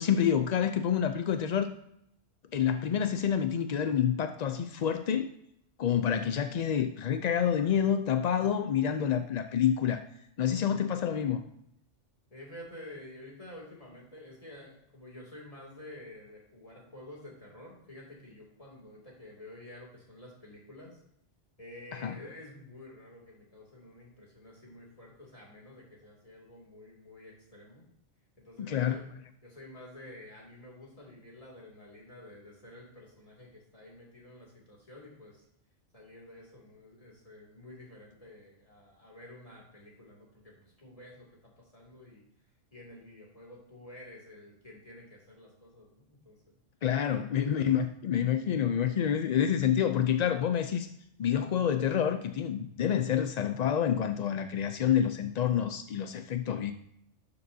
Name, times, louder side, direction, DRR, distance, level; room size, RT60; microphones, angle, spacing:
voice 1, 0.0-1.8 2.5-5.3 5.8-10.0 10.4-11.4 22.0-22.2 28.6-29.0 46.8-50.9 51.2-56.7, left 9 dB, 70° left, 8 dB, 0.4 m, -28 dB
voice 2, 12.3-21.0 21.6-27.9 28.4-29.1 29.4-35.4 35.9-42.2 42.7-46.4 47.0-47.2 47.6-47.7, left 1 dB, 30° left, -3 dB, 2.7 m, -50 dB
12.0 x 6.8 x 2.7 m, 0.74 s
omnidirectional pair, 1.2 m